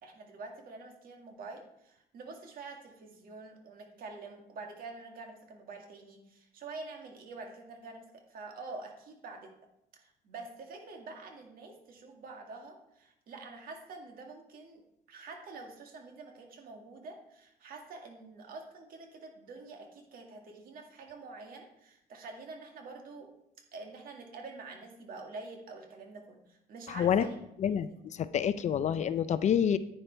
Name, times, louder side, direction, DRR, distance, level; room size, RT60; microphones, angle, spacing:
voice 1, 0.0-9.5 9.9-14.8 15.1-23.3 23.7-27.4, right 3 dB, 60° right, 2 dB, 2.0 m, -47 dB
voice 2, 26.9-27.3 27.6-29.8, left 8 dB, 45° left, 14 dB, 0.5 m, -28 dB
10.5 x 9.0 x 3.4 m, 0.80 s
cardioid pair, 110°, 17 cm